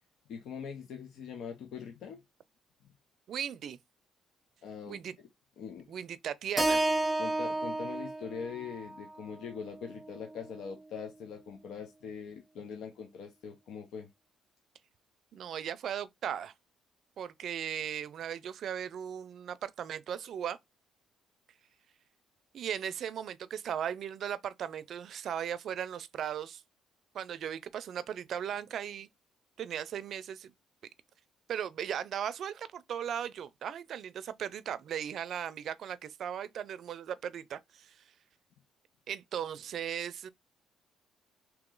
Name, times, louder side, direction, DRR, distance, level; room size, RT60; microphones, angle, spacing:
voice 1, 0.3-2.2 4.6-5.0 5.6-5.9 7.2-14.1, left 6 dB, 75° left, 0.8 m, -42 dB
voice 2, 3.3-3.8 4.9-5.1 5.9-6.8 15.3-16.5 17.2-20.6 22.5-26.6 27.1-29.1 29.6-30.5 31.5-37.9 39.1-40.3, right 9 dB, 60° right, 0.5 m, -37 dB
Keyboard (musical), 6.6-10.8, right 2 dB, 5° right, 0.7 m, -33 dB
3.0 x 3.0 x 3.7 m
cardioid pair, 90°, 0 cm